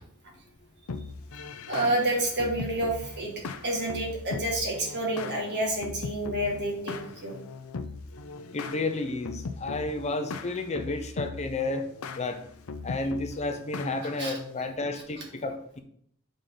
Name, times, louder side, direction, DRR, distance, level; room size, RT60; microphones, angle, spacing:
sound 1, 0.9-14.6, left 4 dB, 75° left, 0.6 m, -40 dB
voice 1, 1.7-3.3 3.6-7.3 14.0-14.3, right 1 dB, 55° right, -1 dB, 2.0 m, -29 dB
voice 2, 8.5-11.9 12.1-12.4 12.8-15.8, left 2 dB, 30° left, 7 dB, 0.6 m, -31 dB
6.4 x 5.2 x 3.9 m, 0.64 s
head